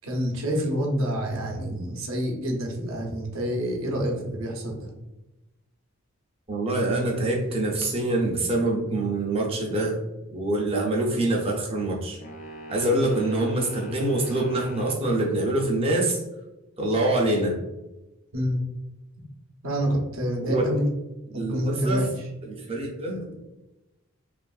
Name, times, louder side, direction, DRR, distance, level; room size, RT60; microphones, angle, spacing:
voice 1, 0.0-4.9 18.3-18.6 19.6-20.9 21.3-22.1, equal, 70° right, 0 dB, 0.6 m, -27 dB
voice 2, 6.5-10.0 10.3-12.2 12.7-16.2 16.8-17.6 20.4-20.7 21.3-22.1 22.4-23.4, right 2 dB, 25° right, -1 dB, 0.5 m, -25 dB
sound 1, 12.2-15.0, equal, 30° left, 0.3 m, -42 dB
2.9 x 2.4 x 2.3 m, 0.99 s
head